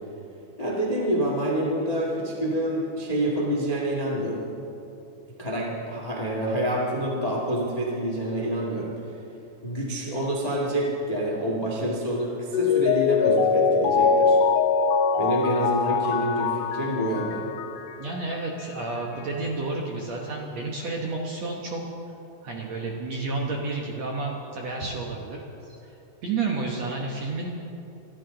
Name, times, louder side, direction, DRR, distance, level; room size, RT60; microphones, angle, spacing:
voice 1, 0.6-4.5 5.4-8.9 9.6-14.4 15.2-17.4, right 1 dB, 30° left, -2 dB, 0.7 m, -27 dB
Mallet percussion, 12.5-18.1 18.4-18.5, left 5 dB, 80° left, 1.8 m, -23 dB
voice 2, 18.0-21.8 22.4-26.0 26.2-27.5, right 3 dB, 65° right, -1 dB, 1.8 m, -31 dB
25.0 x 12.5 x 3.9 m, 2.8 s
omnidirectional pair, 4.5 m